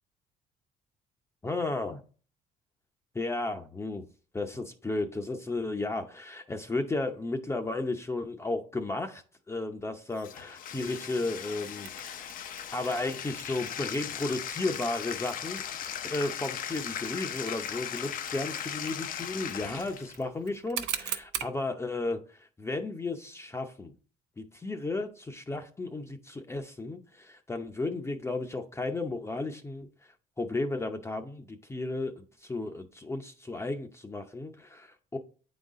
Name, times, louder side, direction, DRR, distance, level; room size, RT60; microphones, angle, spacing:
voice 1, 1.4-2.0 3.1-4.1 4.3-12.3 12.7-23.9 24.4-29.9 30.4-35.2, left 2 dB, 15° left, 0.6 m, -34 dB
Bathtub (filling or washing), 10.2-20.2, left 9 dB, 55° left, 0.6 m, -38 dB
Mechanisms, 11.8-21.6, right 11 dB, 85° right, 0.8 m, -43 dB
8.8 x 4.0 x 3.7 m
cardioid pair, 110°, 17 cm